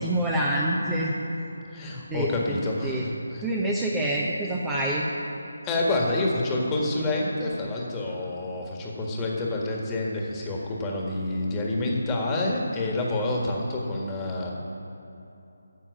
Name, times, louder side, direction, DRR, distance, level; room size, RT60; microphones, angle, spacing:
voice 1, 0.0-1.1 2.1-2.6 2.8-3.0 3.4-5.1, right 1 dB, 10° right, -4 dB, 0.8 m, -26 dB
voice 2, 1.7-3.5 5.6-14.5, left 2 dB, 15° left, -2 dB, 1.7 m, -28 dB
10.0 x 7.1 x 8.2 m, 2.9 s
figure-of-eight pair, 155°, 0 cm